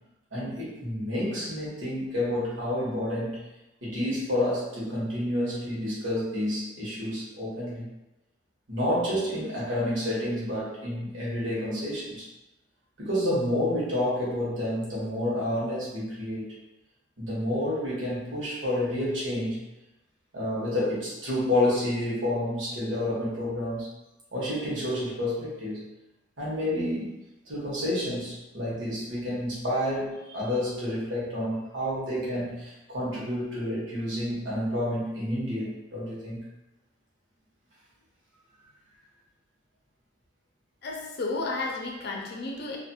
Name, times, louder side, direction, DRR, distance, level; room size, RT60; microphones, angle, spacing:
voice 1, 0.3-3.4 3.8-7.9 8.7-12.3 13.0-16.5 17.2-19.6 20.3-23.9 24.3-25.8 26.4-27.1 27.5-36.4, left 1 dB, 80° right, -8 dB, 1.1 m, -29 dB
voice 2, 40.8-42.8, left 3 dB, 55° left, 0 dB, 0.5 m, -32 dB
2.5 x 2.5 x 2.7 m, 0.99 s
head